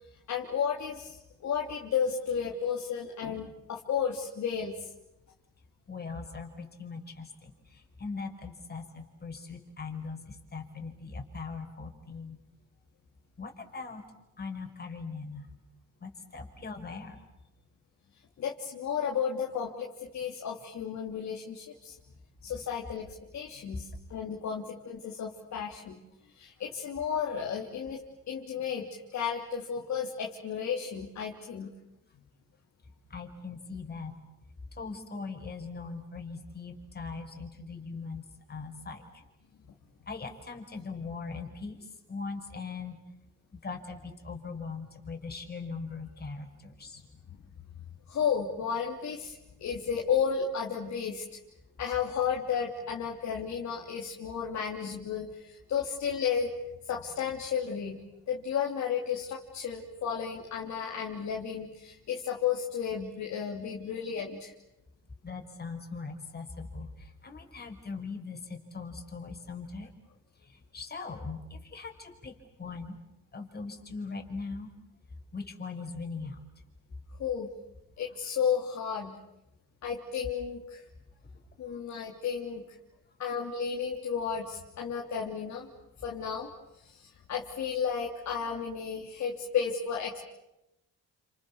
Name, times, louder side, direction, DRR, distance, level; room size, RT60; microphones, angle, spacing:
voice 1, 0.3-4.9 18.4-19.9 20.1-21.9 22.4-26.0 26.3-28.0 28.3-31.7 47.8-51.2 51.8-56.5 56.8-58.0 58.3-64.5 77.2-77.5 78.0-79.2 79.8-80.8 81.6-82.6 83.2-85.7 86.0-86.5 86.8-90.2, left 7 dB, 65° left, -2 dB, 3.2 m, -33 dB
voice 2, 5.9-12.4 13.4-14.0 14.4-15.5 16.0-17.2 23.7-23.8 33.1-34.1 34.8-39.0 40.1-43.0 43.5-47.0 65.2-69.9 70.4-73.0 73.3-74.7 75.3-76.4, left 4 dB, 30° left, 4 dB, 5.4 m, -40 dB
29.5 x 27.5 x 7.1 m, 0.91 s
cardioid pair, 90°, 30 cm